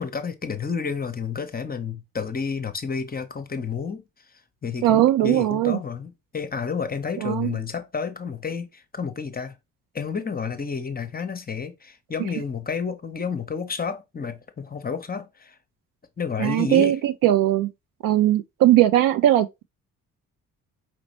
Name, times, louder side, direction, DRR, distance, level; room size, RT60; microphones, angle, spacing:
voice 1, 0.0-4.0 4.6-9.6 9.9-15.6 16.2-17.0, left 5 dB, 20° left, 0.8 m, -30 dB
voice 2, 4.8-5.8 7.2-7.5 16.4-17.7 18.0-19.6, right 13 dB, 50° right, 0.5 m, -19 dB
5.0 x 3.1 x 2.9 m
figure-of-eight pair, 40°, 44 cm